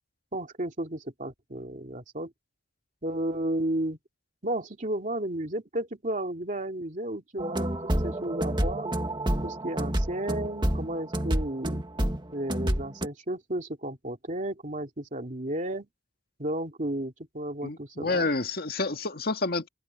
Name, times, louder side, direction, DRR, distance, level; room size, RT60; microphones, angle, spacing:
voice 1, 0.3-2.3 3.0-4.0 4.4-8.9 9.4-11.8 12.3-15.9 16.4-18.3, right 1 dB, 40° right, 2.6 m, -33 dB
sound 1, 7.4-13.1, right 1 dB, 25° right, 1.9 m, -28 dB
voice 2, 17.6-19.7, left 3 dB, 55° left, 1.8 m, -29 dB
head